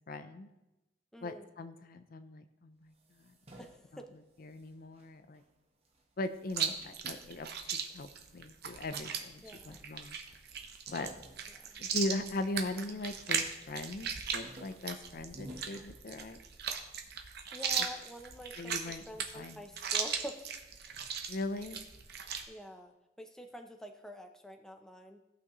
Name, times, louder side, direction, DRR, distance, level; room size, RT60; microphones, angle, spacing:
voice 1, 0.1-0.5 1.2-3.6 3.9-4.0 4.4-5.4 6.2-10.2 10.9-11.1 11.8-16.4 17.8-17.9 18.6-19.1 19.3-19.6 21.3-21.9, left 2 dB, 45° left, 10 dB, 0.5 m, -40 dB
voice 2, 1.1-1.5 3.6-4.0 9.4-9.9 11.5-11.8 17.5-20.5 20.8-21.1 22.5-25.2, equal, 5° left, 4 dB, 0.6 m, -47 dB
sound 1, 2.9-5.5 5.8-8.3 8.9-9.6 9.9-10.0 10.3-12.9 13.2-13.7 14.0-16.6, equal, 30° right, 1.1 m, -55 dB
Chewing mastication, 6.5-22.4, right 7 dB, 55° right, 0.8 m, -38 dB
16.0 x 6.0 x 3.0 m, 0.98 s
head